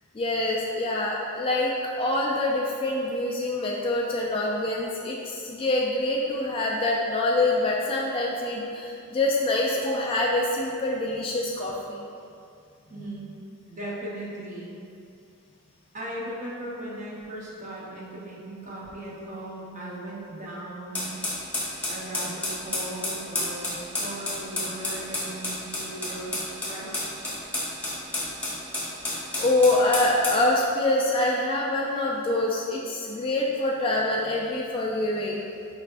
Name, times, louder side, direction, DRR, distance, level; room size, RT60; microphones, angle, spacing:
voice 1, 0.1-12.0 29.4-35.4, left 2 dB, 25° left, -3 dB, 0.3 m, -25 dB
voice 2, 12.9-13.3 13.7-14.7 15.9-21.2 21.9-27.2, right 1 dB, 35° right, -6 dB, 0.8 m, -38 dB
sound 1, 20.9-30.4, left 1 dB, 5° left, 0.9 m, -30 dB
5.0 x 3.3 x 2.4 m, 2.5 s
head